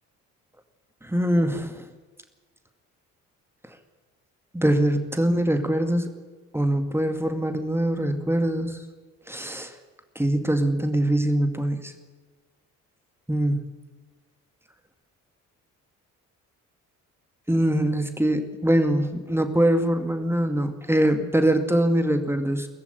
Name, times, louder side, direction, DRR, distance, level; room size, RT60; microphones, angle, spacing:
voice 1, 1.0-1.8 4.5-6.1 6.5-8.8 9.3-9.7 10.2-11.9 13.3-13.7 17.5-22.7, right 1 dB, 5° right, 8 dB, 2.2 m, -23 dB
19.0 x 14.5 x 9.9 m, 1.3 s
figure-of-eight pair, 45°, 43 cm